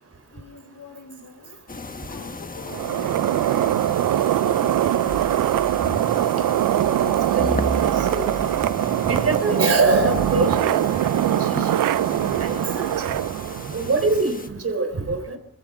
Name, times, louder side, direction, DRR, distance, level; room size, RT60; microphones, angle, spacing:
voice 1, 0.3-1.6 2.0-4.1 4.4-6.0, left 3 dB, 75° left, -4 dB, 6.0 m, -44 dB
sound 1, 1.7-14.5, left 3 dB, 25° left, 1.4 m, -36 dB
sound 2, 2.7-14.2, right 12 dB, 70° right, 0.5 m, -22 dB
sound 3, 5.1-10.7, right 2 dB, 90° right, 7.8 m, -34 dB
voice 2, 7.0-8.3 9.1-11.8 12.4-13.2 13.7-15.4, right 3 dB, 45° right, 7 dB, 3.8 m, -24 dB
22.5 x 14.5 x 3.7 m, 0.75 s
cardioid pair, 90°, 34 cm